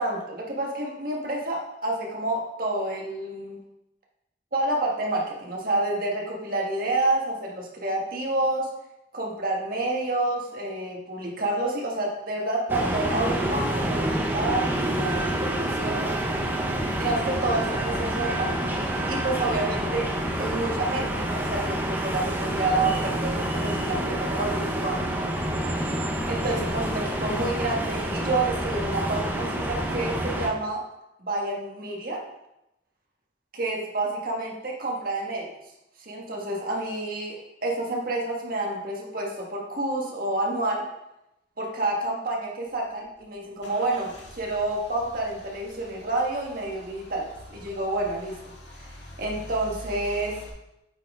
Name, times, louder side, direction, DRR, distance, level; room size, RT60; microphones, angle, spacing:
voice 1, 0.0-3.6 4.5-8.7 9.1-14.1 14.3-16.1 17.0-20.0 20.4-25.0 26.3-30.8 31.2-32.2 33.5-35.5 36.0-40.9 41.6-48.5 48.8-48.9 49.2-50.4, right 2 dB, 50° right, -1 dB, 1.5 m, -29 dB
sound 1, 12.7-30.5, right 1 dB, 10° right, 0.7 m, -28 dB
Car / Engine starting / Idling, 42.7-50.5, equal, 85° left, 1.5 m, -45 dB
8.6 x 4.2 x 3.6 m, 0.88 s
head